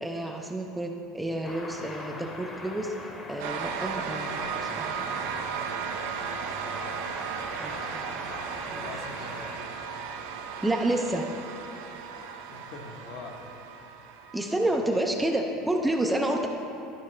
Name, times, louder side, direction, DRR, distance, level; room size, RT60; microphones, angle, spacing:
voice 1, 0.0-2.9 3.3-5.2 7.6-8.1 8.7-8.8 10.6-11.3 14.3-16.5, right 1 dB, 5° right, 2 dB, 0.4 m, -29 dB
sound 1, 1.4-9.6, left 2 dB, 20° left, 0.9 m, -41 dB
sound 2, 3.4-14.9, right 6 dB, 85° right, 0.6 m, -36 dB
voice 2, 8.8-9.5 12.5-13.5 14.8-15.2, left 3 dB, 55° left, 2 dB, 0.9 m, -43 dB
12.5 x 5.1 x 3.2 m, 2.9 s
cardioid pair, 150°, 0 cm